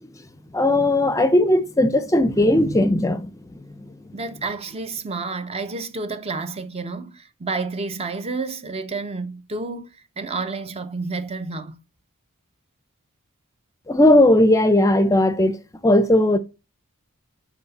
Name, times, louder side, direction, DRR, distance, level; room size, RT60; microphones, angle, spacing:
voice 1, 0.5-3.6 13.9-15.6 15.8-16.4, left 1 dB, 15° left, 0.6 m, -17 dB
voice 2, 4.1-9.9 10.2-11.8, right 3 dB, 25° right, 0.6 m, -30 dB
8.1 x 5.0 x 4.0 m
head